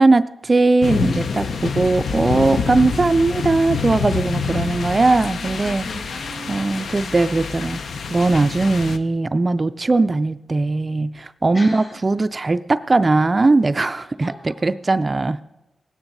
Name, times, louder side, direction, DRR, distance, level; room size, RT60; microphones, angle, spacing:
voice 1, 0.0-5.8 6.5-7.8 8.1-15.4, right 3 dB, 30° right, 12 dB, 0.3 m, -19 dB
sound 1, 0.8-9.0, left 5 dB, 70° left, 0.6 m, -26 dB
voice 2, 4.5-6.7 11.5-12.0 14.2-14.5, left 1 dB, 50° left, -1 dB, 5.4 m, -37 dB
19.0 x 9.7 x 3.9 m, 1.0 s
cardioid pair, 85°, 0 cm